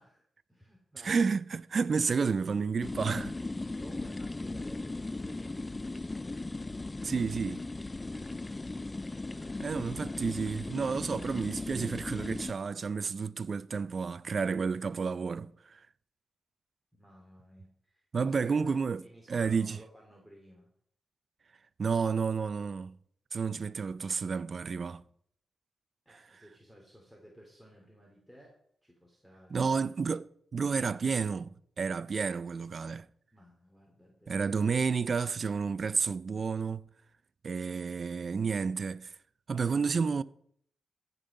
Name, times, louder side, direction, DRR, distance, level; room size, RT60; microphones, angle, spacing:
voice 1, 0.0-1.3 3.8-6.2 8.1-8.3 9.3-10.1 16.9-20.7 26.0-28.6 28.8-29.6 33.3-34.5, equal, 5° left, 3.1 m, -56 dB
voice 2, 1.0-3.4 7.0-7.6 9.6-15.8 18.1-19.8 21.8-22.9 23.3-25.0 29.5-33.1 34.3-36.8 37.4-39.1 39.5-40.2, right 5 dB, 55° right, 0.5 m, -31 dB
sound 1, 2.8-12.5, left 2 dB, 25° left, 0.3 m, -37 dB
14.5 x 5.5 x 5.4 m
supercardioid pair, 55°, 0 cm